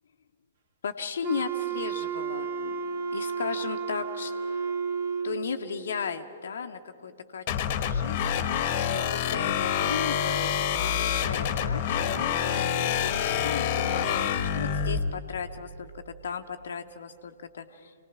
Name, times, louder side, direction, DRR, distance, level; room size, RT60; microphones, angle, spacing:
voice 1, 0.8-2.8 3.1-4.3 5.2-8.5 8.9-14.3 14.5-17.9, left 6 dB, 60° left, 6 dB, 0.8 m, -36 dB
Wind instrument woodwind instrument, 1.2-5.5, right 6 dB, 55° right, 1.7 m, -32 dB
sound 1, 7.5-15.0, left 8 dB, 40° left, 1.1 m, -27 dB
26.0 x 18.5 x 5.9 m, 2.6 s
figure-of-eight pair, 115°, 0 cm